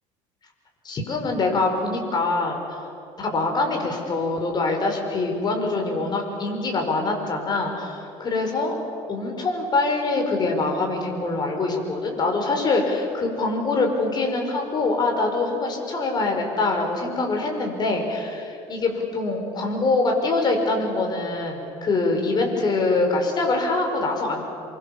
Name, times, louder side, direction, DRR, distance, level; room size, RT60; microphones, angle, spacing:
voice 1, 0.8-2.9 3.2-8.7 9.1-24.4, left 3 dB, 35° left, 2 dB, 5.5 m, -24 dB
28.0 x 24.0 x 7.3 m, 2.8 s
cardioid pair, 120°, 13 cm